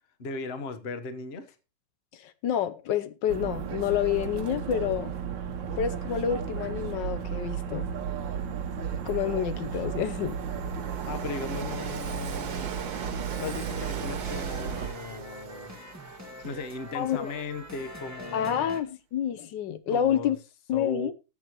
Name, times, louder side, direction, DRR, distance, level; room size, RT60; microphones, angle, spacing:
voice 1, 0.2-1.5 11.1-12.7 13.4-15.8 16.4-18.7 19.9-20.3 20.7-21.1, left 4 dB, 40° left, 1.2 m, -37 dB
voice 2, 2.1-5.1 5.8-7.9 9.1-10.4 16.9-17.3 18.3-20.4 20.7-21.1, left 9 dB, 80° left, 1.4 m, -28 dB
sound 1, 3.3-14.9, right 7 dB, 85° right, 1.7 m, -34 dB
Train, 7.4-7.5 7.9-18.3, right 6 dB, 60° right, 1.7 m, -42 dB
sound 2, 13.3-18.8, equal, 10° right, 1.6 m, -45 dB
20.0 x 8.2 x 3.0 m
omnidirectional pair, 1.9 m